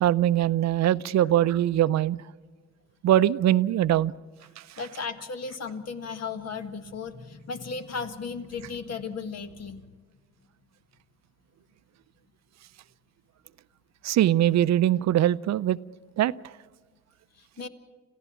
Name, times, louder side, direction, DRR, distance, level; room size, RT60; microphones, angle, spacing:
voice 1, 0.0-2.2 3.0-4.1 14.0-15.8 16.2-16.3, right 12 dB, 65° right, 16 dB, 0.5 m, -22 dB
voice 2, 4.8-9.8 17.4-17.7, left 5 dB, 55° left, 9 dB, 1.7 m, -35 dB
27.0 x 15.0 x 7.1 m, 1.4 s
cardioid pair, 90°, 30 cm